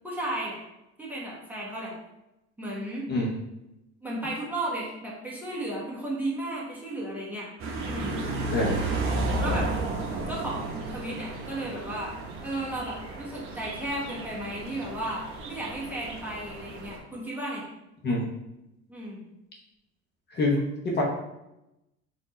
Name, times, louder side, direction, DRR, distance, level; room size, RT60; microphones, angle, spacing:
voice 1, 0.0-0.6 1.0-1.9 2.6-3.0 4.0-7.5 7.8-8.1 9.4-9.7 10.3-12.2 12.4-17.7 18.9-19.2, right 1 dB, 5° right, -6 dB, 1.1 m, -34 dB
voice 2, 3.1-3.4 8.5-8.8 18.0-18.2 20.3-20.6 20.8-21.0, left 2 dB, 35° left, -2 dB, 0.9 m, -25 dB
sound 1, 7.6-17.0, right 2 dB, 45° right, 0.9 m, -33 dB
4.4 x 2.7 x 4.2 m, 0.90 s
cardioid pair, 140°, 30 cm